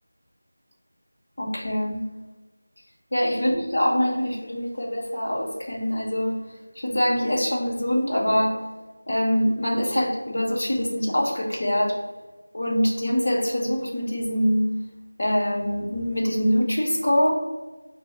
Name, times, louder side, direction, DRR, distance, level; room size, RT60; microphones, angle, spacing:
voice 1, 1.4-2.0 3.1-6.3 6.8-8.6 9.1-11.9 12.5-14.6 15.2-17.3, equal, 45° left, -3 dB, 0.8 m, -24 dB
6.1 x 2.1 x 2.4 m, 1.2 s
figure-of-eight pair, 180°, 0 cm